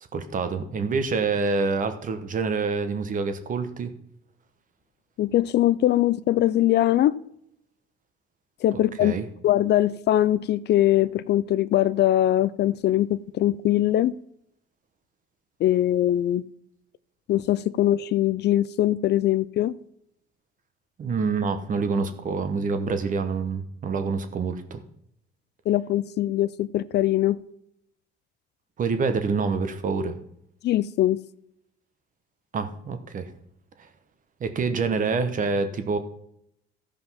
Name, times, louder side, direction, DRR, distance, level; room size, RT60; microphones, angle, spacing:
voice 1, 0.1-3.9 9.0-9.2 21.0-24.8 28.8-30.2 32.5-33.3 34.4-36.0, right 4 dB, 40° right, 1.1 m, -26 dB
voice 2, 5.2-7.2 8.6-9.2 9.4-14.1 15.6-16.4 17.3-19.7 25.7-27.4 30.6-31.2, left 13 dB, 55° left, 0.4 m, -22 dB
14.0 x 5.2 x 5.7 m
cardioid pair, 130°, 21 cm